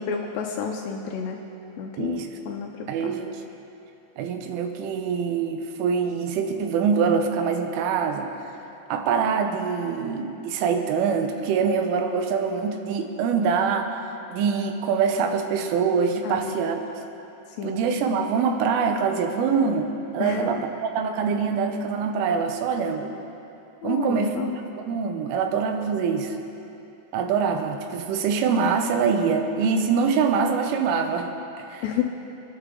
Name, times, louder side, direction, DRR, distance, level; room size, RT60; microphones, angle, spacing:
voice 1, 0.1-1.4 1.8-3.1 16.2-16.5 17.6-17.8 20.2-20.7 23.8-24.6 30.0-30.1 31.8-32.0, left 8 dB, 80° left, 2 dB, 2.6 m, -30 dB
voice 2, 2.0-2.3 2.9-3.4 4.2-8.3 8.9-14.0 14.3-16.8 17.6-23.1 23.8-24.4 24.8-26.4 27.1-31.3 31.6-31.8, right 6 dB, 85° right, 6 dB, 3.4 m, -24 dB
27.0 x 9.8 x 3.8 m, 2.8 s
omnidirectional pair, 5.5 m